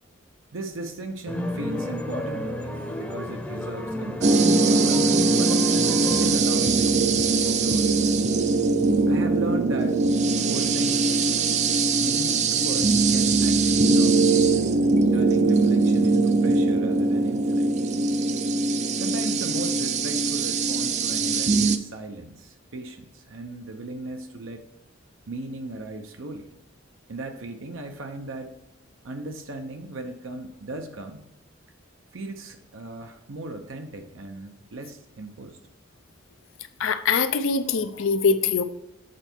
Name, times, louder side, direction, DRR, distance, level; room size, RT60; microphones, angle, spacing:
voice 1, 0.5-5.7 6.2-7.9 9.1-10.0 10.4-11.1 11.9-14.6 15.1-17.7 18.9-24.6 25.3-26.5 27.1-28.6 29.0-31.3 32.1-35.6, right 2 dB, 75° right, 5 dB, 0.7 m, -36 dB
sound 1, 1.3-6.3, left 1 dB, 10° left, 0.7 m, -31 dB
sound 2, 4.2-21.8, right 3 dB, 35° right, 0.4 m, -21 dB
voice 2, 36.8-38.6, left 5 dB, 75° left, 10 dB, 0.5 m, -23 dB
7.5 x 4.4 x 4.5 m, 0.89 s
head